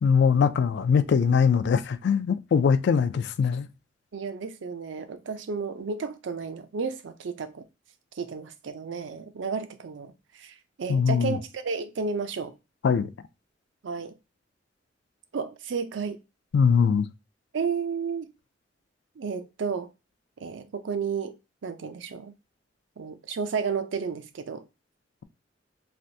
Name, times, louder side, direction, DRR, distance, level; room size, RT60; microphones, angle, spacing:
voice 1, 0.0-3.7 10.9-11.4 12.8-13.1 16.5-17.1, left 6 dB, 65° left, 0.3 m, -22 dB
voice 2, 4.1-7.6 8.2-12.6 13.8-14.1 15.3-16.2 17.5-18.3 19.2-19.9 20.4-21.4 21.6-22.3 23.0-24.7, right 5 dB, 75° right, 0.4 m, -32 dB
3.3 x 2.5 x 2.6 m
head